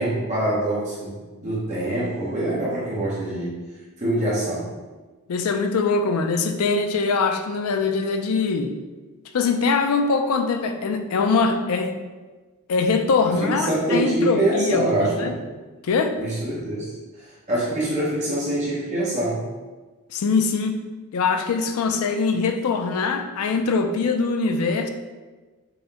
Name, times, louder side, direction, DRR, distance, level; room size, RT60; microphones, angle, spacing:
voice 1, 0.0-3.6 4.0-4.7 13.4-15.5 16.2-19.5, right 1 dB, 30° right, -7 dB, 0.8 m, -25 dB
voice 2, 5.3-8.7 9.3-11.9 12.7-15.3 15.8-16.2 20.1-20.8 21.1-24.9, left 4 dB, 75° left, 7 dB, 0.4 m, -22 dB
5.4 x 2.1 x 2.8 m, 1.3 s
head